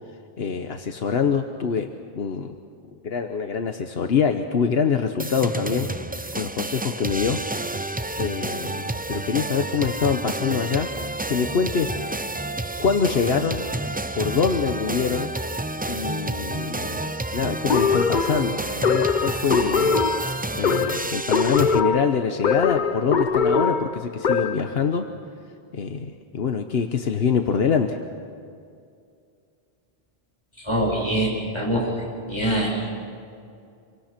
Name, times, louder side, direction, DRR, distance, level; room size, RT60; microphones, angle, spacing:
voice 1, 0.4-1.9 2.1-2.5 3.0-5.9 6.3-7.4 8.2-10.9 11.3-11.9 12.8-13.7 14.2-15.3 15.9-20.0 20.5-25.1 25.7-28.0, left 6 dB, 75° left, 6 dB, 1.2 m, -24 dB
sound 1, 5.2-21.8, right 2 dB, 15° right, 0.4 m, -30 dB
sound 2, 17.7-24.7, left 5 dB, 50° left, 0.9 m, -22 dB
voice 2, 30.6-31.9 32.2-32.9, right 1 dB, 25° left, -4 dB, 7.6 m, -24 dB
27.0 x 24.0 x 5.9 m, 2.4 s
omnidirectional pair, 1.0 m